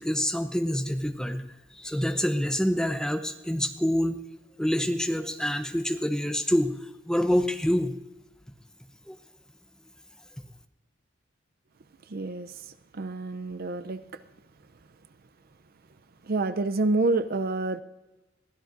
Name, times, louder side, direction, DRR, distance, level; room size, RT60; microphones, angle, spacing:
voice 1, 0.0-1.4 1.7-4.2 4.6-6.7 7.1-7.9 9.1-9.2, equal, 5° left, 7 dB, 0.7 m, -26 dB
voice 2, 12.1-12.7 12.9-14.0 16.2-17.8, right 3 dB, 50° right, 12 dB, 0.5 m, -28 dB
22.0 x 16.0 x 2.6 m, 1.1 s
head